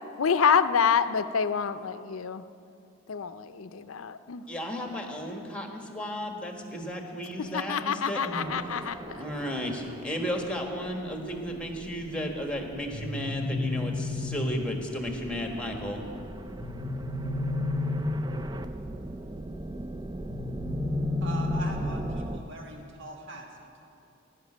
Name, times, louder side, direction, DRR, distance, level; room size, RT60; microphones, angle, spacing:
voice 1, 0.2-2.4 3.1-4.4 7.5-9.2, left 6 dB, 85° left, 12 dB, 0.5 m, -27 dB
voice 2, 4.5-16.0, equal, 5° left, 3 dB, 1.5 m, -34 dB
sound 1, 8.4-22.4, right 1 dB, 20° right, 0.4 m, -40 dB
sound 2, 12.9-14.9 16.6-18.6 20.3-22.3, left 2 dB, 35° left, 0.9 m, -31 dB
voice 3, 21.2-23.8, right 2 dB, 60° right, 1 dB, 1.5 m, -41 dB
16.5 x 5.9 x 10.0 m, 2.6 s
head